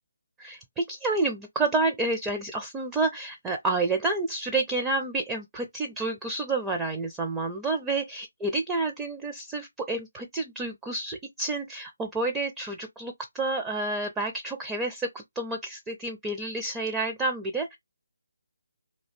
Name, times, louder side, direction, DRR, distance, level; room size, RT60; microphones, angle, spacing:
voice 1, 0.4-17.8, right 2 dB, 10° right, 0.4 m, -29 dB
2.7 x 2.5 x 3.2 m
figure-of-eight pair, 150°, 0 cm